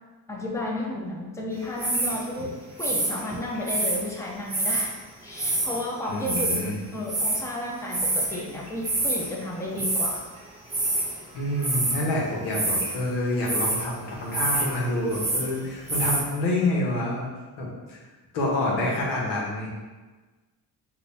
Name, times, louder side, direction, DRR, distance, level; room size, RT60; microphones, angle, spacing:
voice 1, 0.3-4.9 5.2-10.2, left 1 dB, 5° left, -2 dB, 0.8 m, -32 dB
sound 1, 1.8-2.2 2.8-4.0 4.5-4.9 5.3-5.8 6.1-6.6 7.1-7.4 7.9-8.4 8.7-9.3 9.8-10.2 10.7-11.2 11.6-12.1 12.5-13.0 13.5-13.9 14.3-14.7 15.0-15.5 15.9-16.2, right 2 dB, 15° right, 0.9 m, -26 dB
voice 2, 6.1-6.8 11.3-17.3 17.6-18.0 18.3-19.7, left 1 dB, 85° left, -4 dB, 1.3 m, -27 dB
5.2 x 2.7 x 2.8 m, 1.3 s
supercardioid pair, 80°, 40 cm